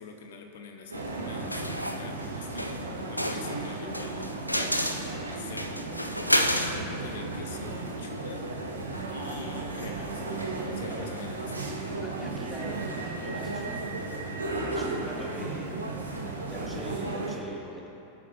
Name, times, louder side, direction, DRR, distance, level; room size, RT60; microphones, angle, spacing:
voice 1, 0.0-5.9 6.7-8.6 9.1-10.4 10.7-11.7, left 5 dB, 60° left, 4 dB, 1.1 m, -45 dB
sound 1, 0.9-17.4, right 2 dB, 80° right, 1.4 m, -35 dB
sound 2, 1.5-2.0 2.6-2.8 3.2-6.8, equal, 90° left, 0.6 m, -29 dB
voice 2, 12.0-14.1 14.7-16.0 16.4-17.9, right 1 dB, ahead, -3 dB, 2.0 m, -42 dB
23.5 x 8.6 x 2.7 m, 2.9 s
figure-of-eight pair, 90°, 0 cm